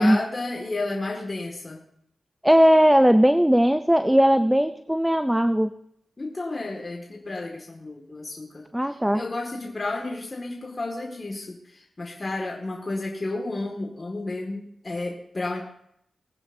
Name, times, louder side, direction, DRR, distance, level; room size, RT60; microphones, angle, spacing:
voice 1, 0.0-1.8 6.2-15.6, left 2 dB, 35° left, 0 dB, 2.0 m, -32 dB
voice 2, 2.4-5.7 8.7-9.2, equal, 5° right, 11 dB, 0.5 m, -18 dB
20.0 x 9.9 x 2.7 m, 0.73 s
cardioid pair, 60°, 0 cm